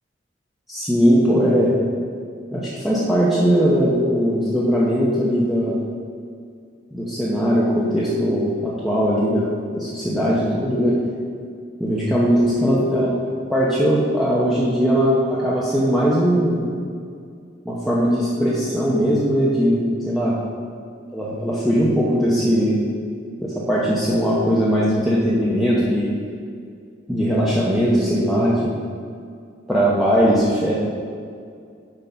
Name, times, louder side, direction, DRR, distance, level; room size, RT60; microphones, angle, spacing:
voice 1, 0.7-1.7 2.5-5.8 6.9-11.0 11.8-13.1 13.5-16.6 17.6-20.4 21.1-22.8 23.4-26.1 27.1-28.8 29.7-30.7, equal, ahead, -8 dB, 0.8 m, -19 dB
8.1 x 3.9 x 5.6 m, 2.3 s
head